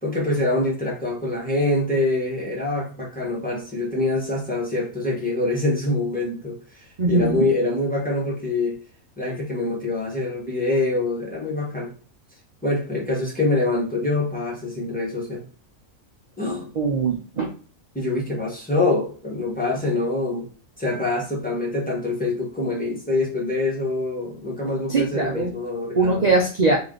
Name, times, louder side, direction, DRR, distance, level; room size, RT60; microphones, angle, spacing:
voice 1, 0.0-8.8 9.2-11.9 12.6-15.4 16.4-16.7 17.9-20.5 20.8-26.3, left 2 dB, 5° left, -5 dB, 1.2 m, -25 dB
voice 2, 7.0-7.4 16.8-17.5 24.9-25.5 25.9-26.8, right 3 dB, 55° right, 1 dB, 0.5 m, -21 dB
3.2 x 2.8 x 3.9 m, 0.40 s
omnidirectional pair, 1.4 m